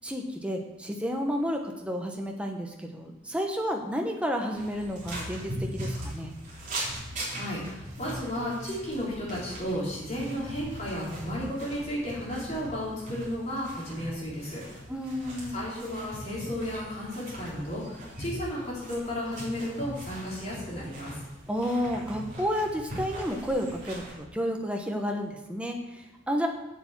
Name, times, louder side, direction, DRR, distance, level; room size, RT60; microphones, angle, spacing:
voice 1, 0.0-6.3 14.9-15.6 21.5-25.8 26.3-26.5, equal, 5° right, 2 dB, 1.1 m, -31 dB
sound 1, 4.5-24.1, right 1 dB, 40° right, 3.5 m, -40 dB
voice 2, 7.3-14.6 15.5-21.1, equal, 35° left, -6 dB, 3.8 m, -33 dB
8.4 x 6.9 x 7.3 m, 1.0 s
head